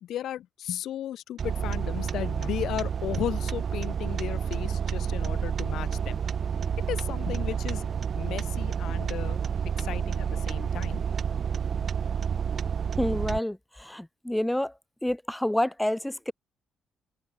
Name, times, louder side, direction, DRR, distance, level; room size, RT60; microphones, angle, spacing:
voice 1, 0.0-6.2 6.9-7.9 8.2-9.4 9.8-11.0, left 11 dB, 75° left, 2.0 m, -35 dB
sound 1, 1.4-13.4, right 7 dB, 50° right, 0.6 m, -29 dB
voice 2, 13.0-14.7 15.0-16.3, left 1 dB, 5° left, 0.5 m, -28 dB
cardioid pair, 90°, 0 cm